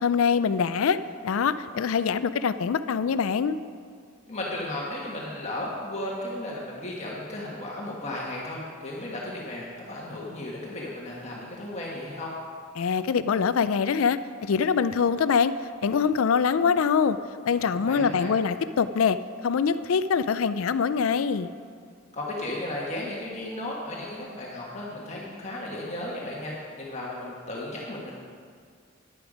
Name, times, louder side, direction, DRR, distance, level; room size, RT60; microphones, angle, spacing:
voice 1, 0.0-1.0 1.2-3.6 12.8-15.5 15.8-17.2 17.5-19.2 19.4-21.5, left 6 dB, 85° left, 13 dB, 0.4 m, -24 dB
voice 2, 4.3-12.3 17.6-18.3 22.1-28.1, left 1 dB, 35° left, -4 dB, 1.4 m, -35 dB
10.5 x 10.0 x 5.0 m, 2.1 s
head